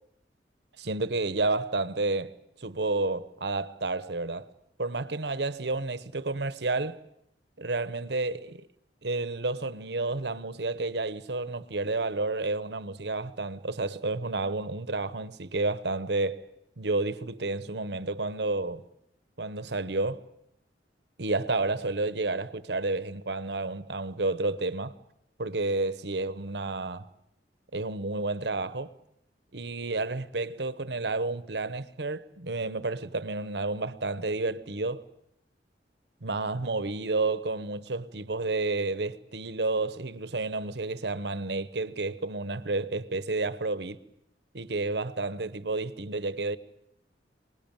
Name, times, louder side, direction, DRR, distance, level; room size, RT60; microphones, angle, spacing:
voice 1, 0.8-4.5 4.8-7.0 7.6-8.7 9.0-16.5 16.8-18.8 19.4-20.2 21.2-25.0 25.4-27.1 27.7-28.9 29.5-35.0 36.2-44.0 44.5-46.6, right 3 dB, 70° right, 1.1 m, -30 dB
24.5 x 20.5 x 9.0 m
head